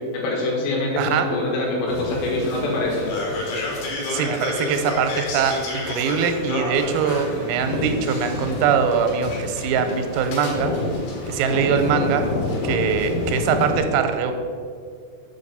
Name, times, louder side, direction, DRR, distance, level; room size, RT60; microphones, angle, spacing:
voice 1, 0.1-3.1, left 2 dB, 90° left, -1 dB, 4.3 m, -24 dB
voice 2, 1.0-1.3 4.1-10.7 11.3-12.2 12.6-14.3, right 7 dB, 90° right, 7 dB, 3.3 m, -22 dB
sound 1, 1.9-13.8, left 3 dB, 70° left, 3.9 m, -28 dB
7.8 x 5.3 x 6.8 m, 2.2 s
omnidirectional pair, 6.0 m